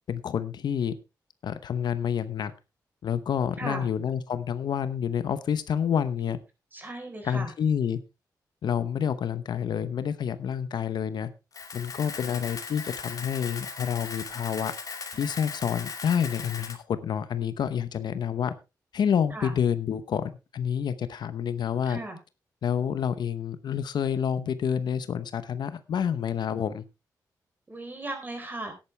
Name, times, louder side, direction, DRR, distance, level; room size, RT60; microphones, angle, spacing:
voice 1, 0.1-0.9 1.4-2.5 3.0-6.4 7.2-8.0 8.6-11.3 11.7-14.7 15.1-18.5 18.9-22.0 22.6-26.8, left 8 dB, 75° left, 13 dB, 0.9 m, -28 dB
voice 2, 3.6-3.9 6.7-7.5 19.3-19.5 21.9-22.2 27.7-28.7, right 2 dB, 25° right, 5 dB, 4.2 m, -36 dB
Camera, 11.5-16.7, left 5 dB, 55° left, 2.5 m, -38 dB
13.0 x 10.5 x 3.3 m, 0.27 s
cardioid pair, 85°, 7 cm